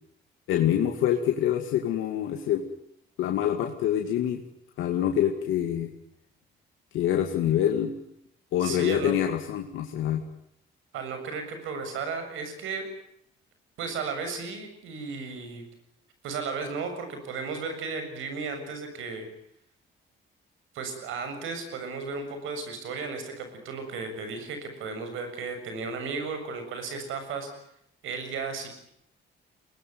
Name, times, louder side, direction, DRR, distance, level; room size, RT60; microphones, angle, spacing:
voice 1, 0.5-2.6 3.2-4.4 4.8-5.9 6.9-7.9 8.5-10.2, left 10 dB, 85° left, 3 dB, 2.3 m, -25 dB
voice 2, 8.6-9.1 10.9-12.9 13.8-15.6 16.2-19.3 20.7-27.5 28.0-28.7, right 4 dB, 85° right, 7 dB, 7.2 m, -34 dB
23.0 x 20.5 x 9.4 m, 0.75 s
cardioid pair, 90°, 20 cm